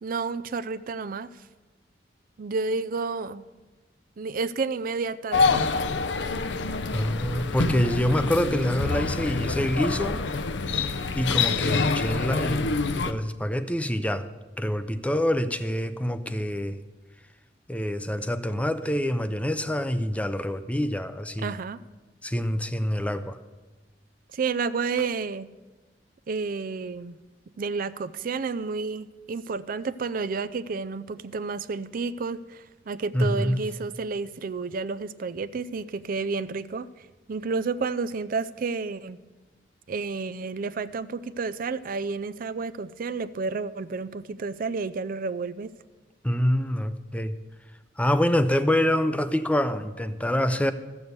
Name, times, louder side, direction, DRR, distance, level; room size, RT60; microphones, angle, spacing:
voice 1, 0.0-1.3 2.4-3.4 4.2-5.7 21.4-21.8 24.3-25.5 26.3-27.2 27.6-39.2 39.9-45.7, right 4 dB, 50° right, 15 dB, 0.4 m, -31 dB
sound 1, 5.3-13.1, left 4 dB, 70° left, 0.6 m, -26 dB
voice 2, 6.9-10.2 11.2-14.3 14.6-16.8 17.7-21.6 22.2-23.4 33.1-33.6 46.2-47.4 48.0-50.7, equal, 10° left, 11 dB, 0.5 m, -26 dB
13.5 x 7.1 x 8.0 m, 1.2 s
head